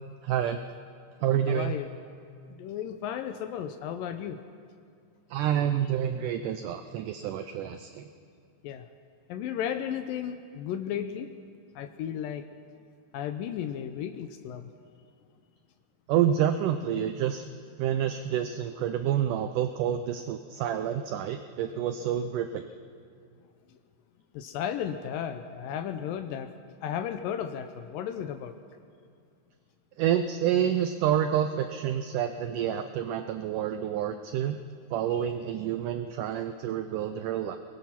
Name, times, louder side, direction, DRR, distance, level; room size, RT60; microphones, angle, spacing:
voice 1, 0.2-0.6 1.2-1.7 5.3-8.1 16.1-17.5 17.8-22.7 30.0-34.6 34.9-37.6, right 10 dB, 90° right, 9 dB, 1.8 m, -28 dB
voice 2, 1.5-1.9 2.5-4.4 8.6-8.9 9.3-11.3 11.8-12.4 13.1-14.7 24.3-26.5 26.8-28.5, left 9 dB, 80° left, 9 dB, 2.1 m, -34 dB
23.0 x 19.5 x 5.9 m, 2.3 s
omnidirectional pair, 4.5 m